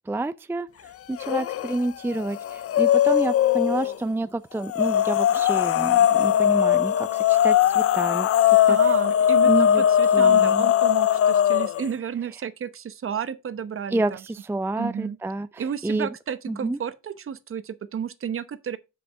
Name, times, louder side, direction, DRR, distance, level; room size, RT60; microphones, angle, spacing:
voice 1, 0.1-0.7 1.1-8.3 8.7-8.8 9.4-9.8 10.1-10.7 13.9-16.1 16.5-16.8, right 2 dB, 10° right, 0.4 m, -29 dB
sound 1, 1.2-1.8 2.1-3.9 4.7-11.9, left 10 dB, 50° left, 0.5 m, -20 dB
voice 2, 8.7-14.2 14.8-15.2 15.6-18.8, right 8 dB, 45° right, 1.0 m, -32 dB
7.6 x 6.4 x 4.6 m
cardioid pair, 90°, 30 cm